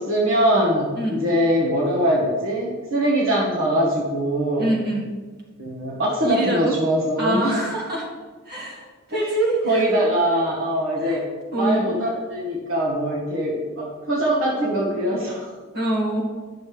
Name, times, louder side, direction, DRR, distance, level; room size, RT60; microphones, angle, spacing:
voice 1, 0.0-4.7 5.6-7.6 9.2-9.3 9.6-11.2 11.5-15.5, equal, 70° right, -4 dB, 1.4 m, -22 dB
voice 2, 1.0-1.3 4.6-5.1 6.2-6.8 7.2-8.1 8.5-10.0 11.0-11.2 11.5-11.9 15.7-16.3, right 1 dB, 50° right, -2 dB, 1.9 m, -25 dB
10.5 x 6.3 x 3.4 m, 1.4 s
head